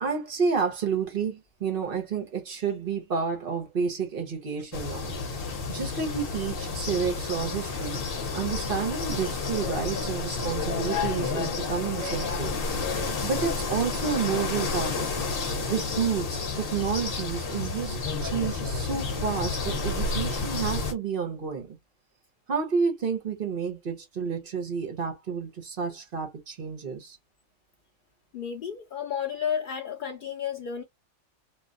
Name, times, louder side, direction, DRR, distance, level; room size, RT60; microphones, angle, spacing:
voice 1, 0.0-5.1 5.7-8.0 8.3-12.5 13.2-15.1 15.7-21.8 22.5-27.2, right 6 dB, 45° right, 0.9 m, -30 dB
sound 1, 4.7-20.9, left 4 dB, 50° left, 0.9 m, -30 dB
voice 2, 28.3-30.8, left 8 dB, 85° left, 0.4 m, -32 dB
3.2 x 2.3 x 2.4 m
omnidirectional pair, 1.4 m